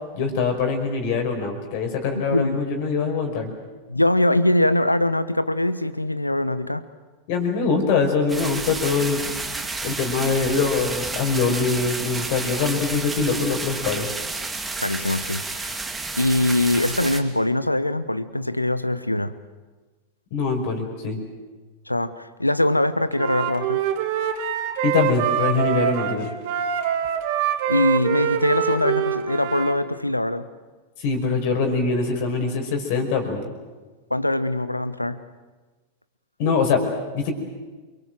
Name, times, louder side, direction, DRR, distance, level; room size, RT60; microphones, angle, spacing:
voice 1, 0.1-3.5 7.3-9.2 9.8-14.1 20.3-21.2 24.8-26.3 31.0-33.4 36.4-36.8 37.1-37.3, left 4 dB, 50° left, 3 dB, 5.3 m, -23 dB
voice 2, 2.1-2.6 3.9-6.8 14.8-15.8 16.2-19.3 21.9-23.8 27.7-30.5 34.1-35.2, left 1 dB, 85° left, 15 dB, 1.1 m, -22 dB
sound 1, 8.3-17.2, right 3 dB, 10° right, 2.6 m, -31 dB
Wind instrument woodwind instrument, 23.1-29.8, right 9 dB, 50° right, 2.5 m, -25 dB
28.5 x 23.5 x 7.8 m, 1.3 s
figure-of-eight pair, 90°, 0 cm